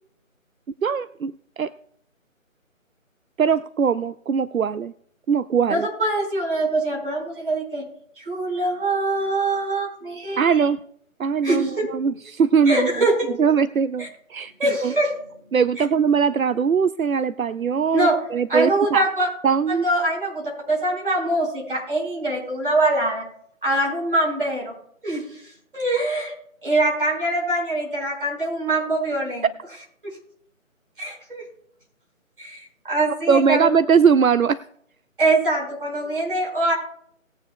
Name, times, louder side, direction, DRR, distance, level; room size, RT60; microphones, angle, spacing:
voice 1, 0.8-1.7 3.4-4.9 5.3-5.9 10.4-10.8 11.2-12.9 13.4-14.5 14.8-15.0 15.5-19.1 19.4-19.9 29.4-29.5 33.3-34.6, right 6 dB, 80° right, 16 dB, 0.6 m, -20 dB
voice 2, 5.7-7.9 8.2-10.6 11.4-11.9 12.7-13.3 14.0-14.1 14.6-15.1 15.8-15.9 17.9-18.1 18.5-19.3 19.7-23.3 23.6-24.7 25.0-25.2 25.7-26.3 26.6-29.5 31.0-31.4 32.4-32.6 32.8-33.7 35.2-36.7, right 2 dB, 40° right, -2 dB, 5.0 m, -23 dB
19.5 x 9.1 x 2.2 m, 0.67 s
figure-of-eight pair, 160°, 41 cm